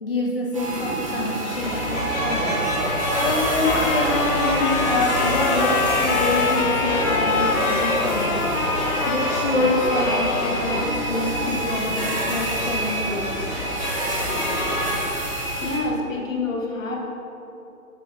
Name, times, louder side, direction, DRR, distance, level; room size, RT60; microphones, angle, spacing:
voice 1, 0.0-2.6 3.2-8.4 9.0-13.4, left 2 dB, 40° left, -3 dB, 0.6 m, -26 dB
sound 1, 0.5-15.8, right 2 dB, 25° right, 0.7 m, -29 dB
sound 2, 1.5-14.9, equal, 10° left, 1.3 m, -27 dB
Trumpet, 3.1-10.9, left 6 dB, 85° left, 0.6 m, -27 dB
voice 2, 15.6-17.0, left 3 dB, 60° left, -2 dB, 1.6 m, -27 dB
6.6 x 6.3 x 4.0 m, 2.8 s
hypercardioid pair, 170°, 43 cm